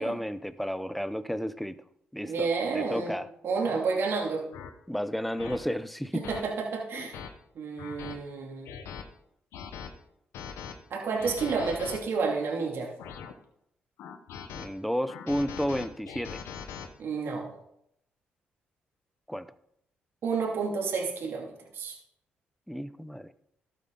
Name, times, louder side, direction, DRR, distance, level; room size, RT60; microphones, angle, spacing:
voice 1, 0.0-1.8 2.1-2.5 2.7-3.3 4.9-6.3 14.5-16.4 19.3-19.5 22.7-23.3, equal, ahead, 15 dB, 0.6 m, -32 dB
voice 2, 2.2-3.1 3.4-4.4 6.1-7.2 7.5-8.7 10.9-12.9 17.0-17.5 20.2-21.9, right 4 dB, 65° right, -1 dB, 2.6 m, -30 dB
sound 1, 2.8-3.0 3.6-3.8 4.5-4.7 5.4-5.6 6.2-6.4 6.9-7.3 7.8-8.2 8.7-9.0 9.5-9.9 10.3-10.7 11.2-12.0 12.6-13.3 14.0-14.7 15.1-16.9, left 7 dB, 85° left, 0.9 m, -41 dB
12.5 x 7.7 x 3.8 m, 0.75 s
supercardioid pair, 55°, 4 cm